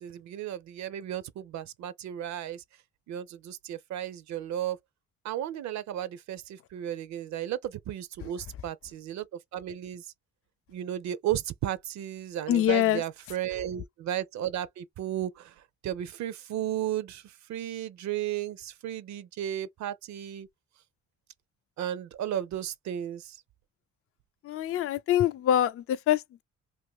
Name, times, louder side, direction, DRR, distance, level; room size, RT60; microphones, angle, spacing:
voice 1, 0.0-2.6 3.1-4.8 5.2-9.2 9.5-10.0 10.7-15.5 15.8-17.2 17.5-20.5 21.8-23.4, right 11 dB, 65° right, 0.5 m, -34 dB
voice 2, 12.5-13.0 24.5-26.4, left 11 dB, 50° left, 0.4 m, -25 dB
2.6 x 2.5 x 3.6 m
cardioid pair, 90°, 30 cm